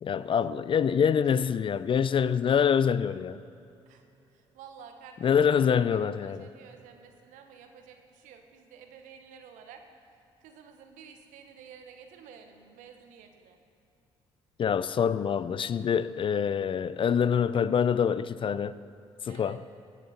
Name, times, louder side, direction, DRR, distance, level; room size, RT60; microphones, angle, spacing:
voice 1, 0.0-3.4 5.2-6.4 14.6-18.8 19.2-19.6, left 7 dB, 40° left, 0.4 m, -25 dB
voice 2, 4.3-5.3 5.7-9.8 10.4-13.6 19.3-19.6, right 7 dB, 75° right, 1.0 m, -51 dB
16.5 x 7.2 x 4.2 m
hypercardioid pair, 50°, 13 cm